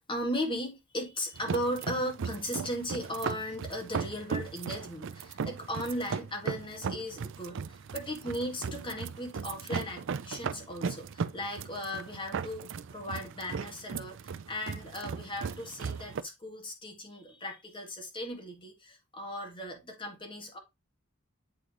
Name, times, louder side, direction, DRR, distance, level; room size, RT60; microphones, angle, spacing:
voice 1, 0.0-20.6, equal, 25° left, 1.8 m, -37 dB
sound 1, 1.3-16.2, right 5 dB, 65° right, 0.5 m, -37 dB
8.6 x 3.8 x 3.0 m
head